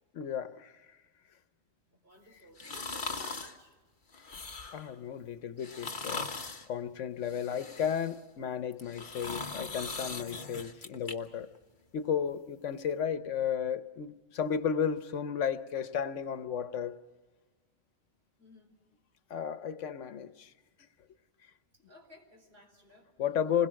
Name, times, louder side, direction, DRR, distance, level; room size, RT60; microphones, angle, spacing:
voice 1, 0.1-0.7 4.7-6.3 6.7-11.5 11.9-17.0 19.3-20.5 23.2-23.7, left 8 dB, 85° left, 1.2 m, -33 dB
voice 2, 2.0-3.8 18.4-18.8 21.9-23.1, equal, 55° right, 4.6 m, -55 dB
sound 1, 2.6-3.6 4.1-4.9 5.6-6.7 7.2-8.2 8.7-11.1 11.5-11.6, left 4 dB, 45° left, 1.4 m, -40 dB
27.0 x 21.5 x 6.4 m
omnidirectional pair, 1.2 m